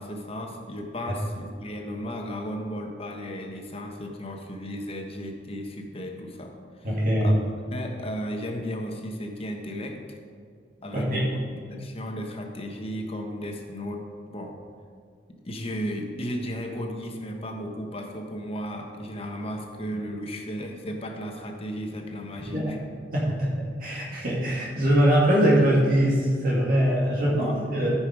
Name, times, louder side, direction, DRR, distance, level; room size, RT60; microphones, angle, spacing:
voice 1, 0.0-7.4 7.7-10.2 10.8-14.6 15.3-22.8 27.3-27.6, equal, 35° left, 2 dB, 1.2 m, -35 dB
voice 2, 6.8-7.4 10.9-11.2 22.5-22.7 23.1-23.5 23.8-27.9, equal, 55° right, -5 dB, 2.1 m, -22 dB
14.0 x 5.7 x 4.8 m, 2.2 s
head